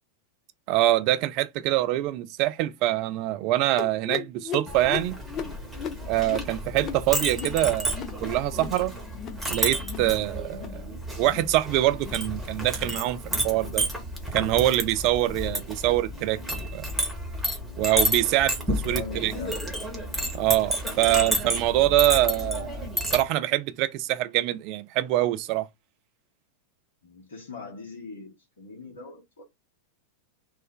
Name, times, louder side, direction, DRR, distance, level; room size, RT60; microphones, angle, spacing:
voice 1, 0.7-5.2 6.1-8.9 9.5-10.7 11.2-13.8 14.3-16.9 17.8-19.3 20.3-22.9 23.1-25.7, right 15 dB, 45° right, 0.4 m, -24 dB
sound 1, 3.8-8.8 9.1-9.5 9.8-10.1 10.5-10.8 11.2-11.5 11.9-12.3 12.7-13.0 13.5-13.8 14.4-14.6 15.2-15.4 16.1-16.2 16.9-17.0, left 7 dB, 30° left, 0.4 m, -38 dB
Chink clink, 4.7-23.2, equal, 5° right, 1.1 m, -31 dB
voice 2, 18.7-19.6 21.2-21.4 21.8-22.0 27.0-29.4, left 4 dB, 65° left, 0.8 m, -42 dB
2.6 x 2.1 x 3.6 m
figure-of-eight pair, 90°, 0 cm